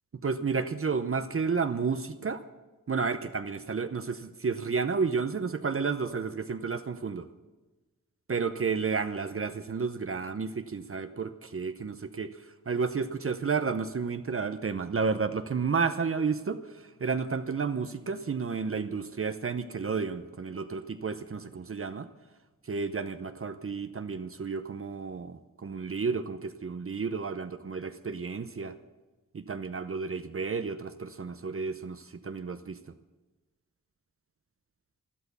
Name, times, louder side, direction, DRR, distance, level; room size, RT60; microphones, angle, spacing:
voice 1, 0.2-2.4 2.9-7.3 8.3-22.1 22.6-28.7 29.3-32.8, right 5 dB, 40° right, 9 dB, 0.7 m, -31 dB
12.5 x 12.5 x 6.9 m, 1.2 s
wide cardioid pair, 95°, 32 cm